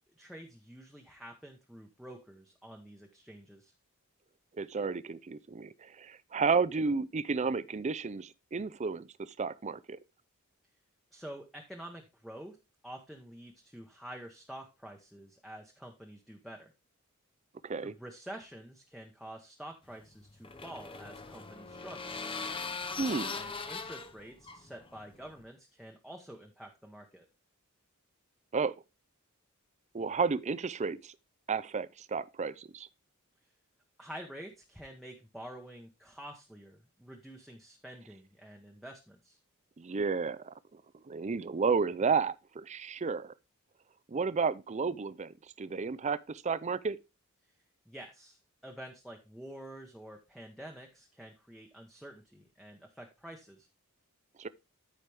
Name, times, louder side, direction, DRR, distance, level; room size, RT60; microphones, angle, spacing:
voice 1, 0.2-3.7 11.1-12.6 12.8-16.7 17.8-22.1 23.3-27.3 34.0-39.4 47.9-53.7, right 1 dB, ahead, 1.0 m, -48 dB
voice 2, 4.6-10.0 17.6-17.9 23.0-23.4 28.5-28.7 29.9-31.1 31.5-32.9 39.8-40.8 41.1-43.3 44.1-47.0 54.4-54.5, right 5 dB, 30° right, 0.5 m, -32 dB
sound 1, 19.9-25.4, left 4 dB, 25° left, 0.7 m, -40 dB
13.0 x 4.9 x 3.4 m
head